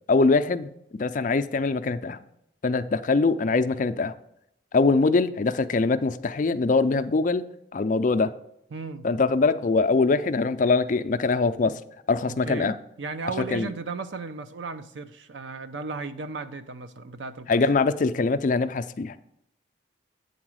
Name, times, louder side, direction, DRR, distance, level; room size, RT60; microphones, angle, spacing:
voice 1, 0.1-2.2 2.6-4.1 4.7-7.4 7.7-8.3 9.0-11.8 12.1-12.8 13.5-13.7 17.5-19.2, left 3 dB, 45° left, 0.4 m, -23 dB
voice 2, 8.7-9.1 12.2-12.7 13.0-17.6, right 4 dB, 75° right, 0.6 m, -35 dB
8.6 x 4.0 x 6.2 m
head